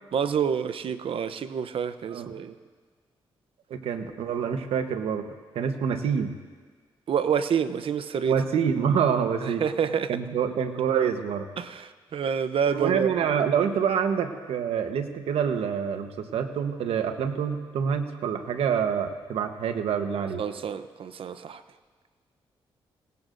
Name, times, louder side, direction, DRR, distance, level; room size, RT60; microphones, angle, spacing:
voice 1, 0.1-2.5 7.1-8.3 9.4-10.1 11.6-13.1 20.4-21.6, right 7 dB, 65° right, 12 dB, 0.7 m, -28 dB
voice 2, 3.7-5.3 5.5-6.4 8.2-9.6 10.1-11.5 12.7-20.4, right 7 dB, 85° right, 7 dB, 1.0 m, -26 dB
25.0 x 17.5 x 2.6 m, 1.5 s
cardioid pair, 65°, 10 cm